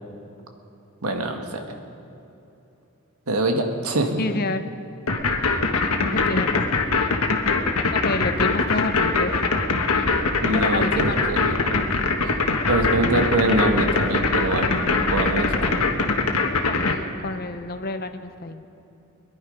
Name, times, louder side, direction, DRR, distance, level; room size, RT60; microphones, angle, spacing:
voice 1, 1.0-1.8 3.3-4.2 10.4-11.8 12.7-14.7 15.1-16.1, right 2 dB, 80° right, 4 dB, 1.6 m, -24 dB
voice 2, 4.2-4.6 6.1-6.8 7.9-9.4 10.5-11.3 16.6-18.7, left 2 dB, 45° left, 9 dB, 0.8 m, -28 dB
sound 1, 5.1-16.9, left 4 dB, 85° left, 1.4 m, -22 dB
sound 2, 9.8-15.8, equal, 15° right, 3.2 m, -36 dB
22.0 x 11.0 x 5.4 m, 2.8 s
head